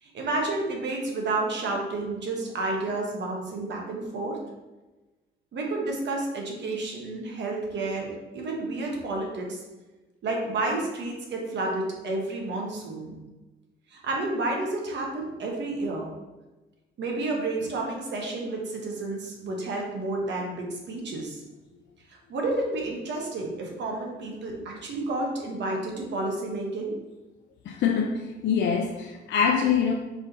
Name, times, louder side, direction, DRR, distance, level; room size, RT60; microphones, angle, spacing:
voice 1, 0.0-4.4 5.5-9.6 10.2-13.2 13.9-16.1 17.0-21.4 22.1-26.9, right 2 dB, 65° right, 0 dB, 1.1 m, -30 dB
voice 2, 27.7-29.9, left 7 dB, 65° left, 2 dB, 0.5 m, -24 dB
4.8 x 3.9 x 2.8 m, 1.1 s
cardioid pair, 90°, 20 cm